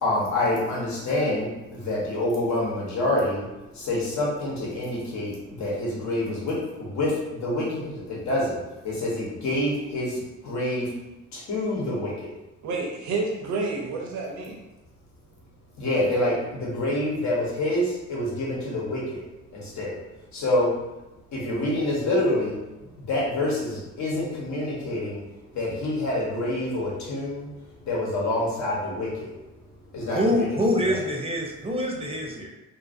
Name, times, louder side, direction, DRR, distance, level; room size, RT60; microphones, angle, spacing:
voice 1, 0.0-3.4 3.8-5.3 5.6-8.6 8.8-10.2 10.4-10.8 11.5-12.3 15.8-17.8 18.1-19.2 19.5-19.9 20.3-20.7 21.3-22.5 23.0-25.2 25.5-27.5 27.8-29.3 29.9-30.8, left 1 dB, 65° left, -5 dB, 1.1 m, -27 dB
voice 2, 12.6-14.6, right 3 dB, 70° right, -1 dB, 0.6 m, -29 dB
voice 3, 30.1-32.5, equal, 20° right, 0 dB, 0.6 m, -25 dB
2.6 x 2.6 x 2.6 m, 1.0 s
cardioid pair, 90°, 30 cm